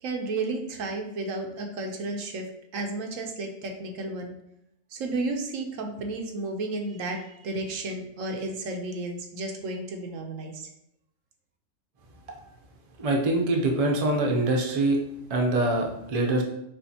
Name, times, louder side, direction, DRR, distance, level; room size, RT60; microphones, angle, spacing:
voice 1, 0.0-2.5 2.7-4.3 4.9-10.6, right 2 dB, 85° right, 2 dB, 1.1 m, -32 dB
voice 2, 13.0-15.0 15.3-16.4, right 2 dB, 35° right, 0 dB, 0.6 m, -24 dB
6.8 x 2.5 x 2.8 m, 0.79 s
omnidirectional pair, 1.3 m